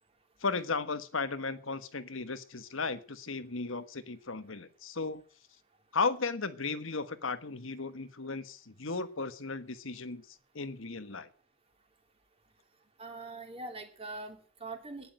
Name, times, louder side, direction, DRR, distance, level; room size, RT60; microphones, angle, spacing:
voice 1, 0.4-5.2 5.9-10.2 10.5-11.3, left 4 dB, 65° left, 12 dB, 1.3 m, -35 dB
voice 2, 13.0-15.1, right 2 dB, 30° right, 5 dB, 2.9 m, -43 dB
12.0 x 10.0 x 9.0 m, 0.41 s
head